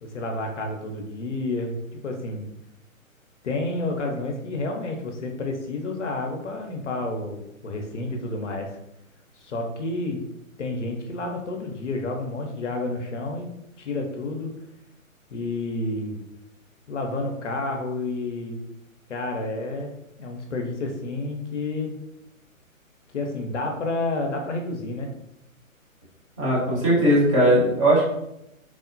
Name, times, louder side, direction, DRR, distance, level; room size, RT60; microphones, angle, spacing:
voice 1, 0.0-2.5 3.4-8.7 9.3-10.2 10.6-13.5 13.8-14.5 15.3-16.2 16.9-18.6 19.1-19.9 20.2-21.9 23.1-25.1, left 2 dB, 60° left, 2 dB, 0.5 m, -30 dB
voice 2, 26.4-28.0, right 1 dB, 25° right, -7 dB, 0.9 m, -19 dB
3.0 x 2.0 x 2.5 m, 0.83 s
figure-of-eight pair, 130°, 42 cm